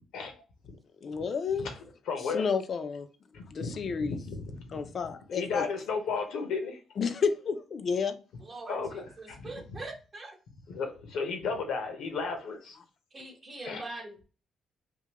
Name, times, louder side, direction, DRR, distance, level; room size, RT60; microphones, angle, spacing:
voice 1, 0.1-0.7 1.6-1.7 2.1-2.5 3.3-4.8 5.3-6.8 8.7-9.8 10.7-12.8 13.6-13.9, left 5 dB, 85° left, 1.0 m, -34 dB
voice 2, 1.0-1.7 2.3-3.1 3.5-4.2 4.7-5.7 7.0-8.1, left 5 dB, 50° left, 0.5 m, -30 dB
voice 3, 9.2-10.3 13.1-14.2, right 2 dB, 30° right, 1.0 m, -42 dB
3.7 x 2.7 x 3.0 m
cardioid pair, 90°, 0 cm